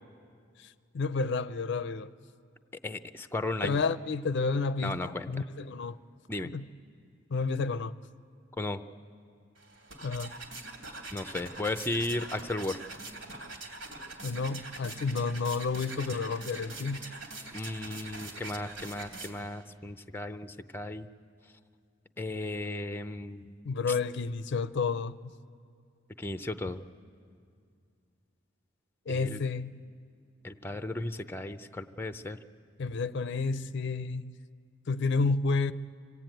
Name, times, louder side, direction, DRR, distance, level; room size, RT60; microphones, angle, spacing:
voice 1, 0.6-2.1 3.6-6.0 6.4-6.7 7.3-7.9 10.0-10.3 14.2-17.0 23.7-25.2 29.1-29.8 32.8-34.4 34.9-35.7, left 4 dB, 65° left, 0.5 m, -30 dB
voice 2, 2.8-3.8 4.8-5.3 6.3-6.5 8.6-8.8 11.1-12.8 17.5-21.1 22.2-23.5 26.2-26.8 29.1-29.4 30.4-32.4, left 2 dB, 10° left, 0.6 m, -35 dB
sound 1, 9.6-19.6, right 2 dB, 80° right, 3.1 m, -43 dB
25.5 x 17.0 x 9.1 m
head